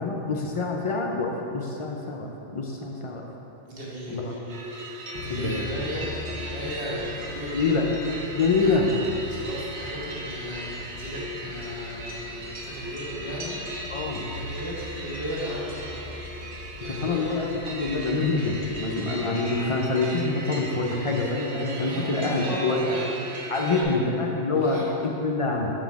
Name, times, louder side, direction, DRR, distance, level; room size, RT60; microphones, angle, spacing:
voice 1, 0.0-3.2 4.1-4.3 5.3-5.6 7.5-7.9 8.3-8.9 13.9-14.2 16.8-22.9 23.5-25.7, left 3 dB, 55° left, 0 dB, 0.3 m, -26 dB
voice 2, 3.7-7.7 8.3-8.9 9.3-17.3 21.7-24.0 24.5-24.8, equal, 55° right, -7 dB, 1.5 m, -36 dB
sound 1, 4.5-23.8, right 1 dB, 85° right, 1.1 m, -37 dB
sound 2, 5.2-18.8, left 3 dB, 70° left, 0.8 m, -42 dB
6.3 x 4.1 x 4.6 m, 3.0 s
omnidirectional pair, 1.1 m